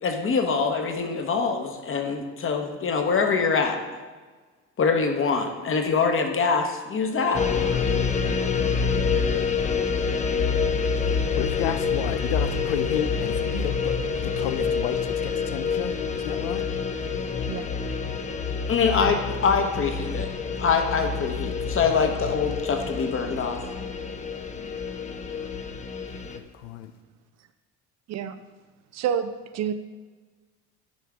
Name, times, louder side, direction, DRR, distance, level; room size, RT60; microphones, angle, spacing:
voice 1, 0.0-3.8 4.8-7.4 18.7-20.3 20.6-23.6, left 5 dB, 35° left, 5 dB, 1.2 m, -24 dB
sound 1, 7.3-26.4, left 5 dB, 20° left, 0.6 m, -27 dB
voice 2, 11.1-15.9 16.2-16.6 26.3-26.9, left 10 dB, 85° left, 11 dB, 0.5 m, -32 dB
voice 3, 28.9-29.7, right 8 dB, 50° right, 11 dB, 0.6 m, -28 dB
10.5 x 4.6 x 3.6 m, 1.4 s
hypercardioid pair, 75°, 35 cm